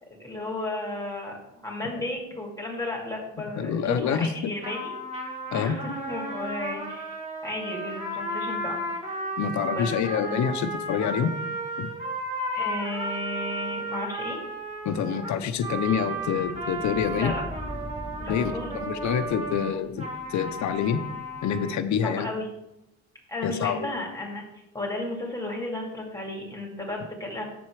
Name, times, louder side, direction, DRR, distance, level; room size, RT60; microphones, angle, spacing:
voice 1, 0.2-1.4 1.6-5.0 5.5-7.2 7.4-8.8 9.7-9.9 10.2-10.4 12.5-14.4 17.2-17.4 18.2-18.8 22.0-22.5 23.3-24.5 24.7-27.4, left 2 dB, 10° left, -2 dB, 2.4 m, -33 dB
voice 2, 3.6-4.5 5.5-5.8 9.4-11.3 11.8-11.9 14.8-17.3 18.3-21.0 21.4-22.3 23.4-23.9, left 8 dB, 70° left, 8 dB, 0.8 m, -27 dB
Trumpet - B natural minor - bad-pitch, 4.6-21.8, right 1 dB, 20° right, 2.5 m, -34 dB
sound 1, 14.8-21.7, left 1 dB, 5° right, 2.8 m, -44 dB
7.5 x 7.0 x 4.8 m, 0.89 s
cardioid pair, 90°, 30 cm